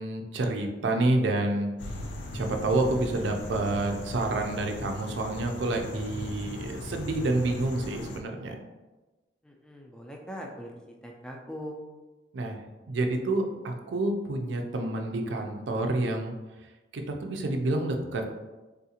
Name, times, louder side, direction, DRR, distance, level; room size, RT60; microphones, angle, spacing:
voice 1, 0.0-1.7 2.3-8.6 12.3-16.3 16.9-18.3, right 2 dB, 75° right, 4 dB, 0.4 m, -28 dB
sound 1, 1.8-8.2, left 1 dB, 75° left, 0.4 m, -38 dB
voice 2, 9.4-10.7 11.0-11.8, equal, 5° left, 0 dB, 0.3 m, -41 dB
3.5 x 2.4 x 2.8 m, 1.1 s
head